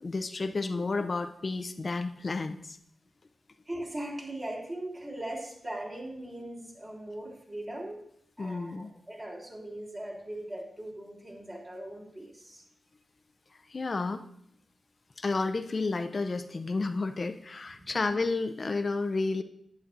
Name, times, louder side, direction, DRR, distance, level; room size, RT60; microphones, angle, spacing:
voice 1, 0.0-2.8 8.4-8.9 13.7-14.2 15.2-19.4, left 3 dB, 50° left, 8 dB, 0.5 m, -31 dB
voice 2, 3.7-8.0 8.4-12.6 17.9-18.2, right 1 dB, 35° right, -2 dB, 3.4 m, -40 dB
11.0 x 9.7 x 2.6 m, 0.71 s
cardioid pair, 45°, 0 cm